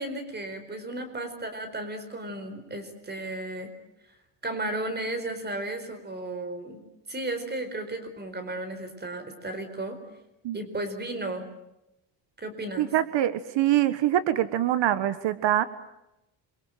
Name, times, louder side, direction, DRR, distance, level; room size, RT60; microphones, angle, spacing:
voice 1, 0.0-3.7 4.4-6.8 7.1-10.0 10.5-11.5 12.4-12.9, right 2 dB, 25° right, 8 dB, 4.6 m, -34 dB
voice 2, 12.8-15.7, right 12 dB, 80° right, 13 dB, 1.4 m, -24 dB
27.5 x 24.0 x 9.1 m, 0.89 s
cardioid pair, 165°, 43 cm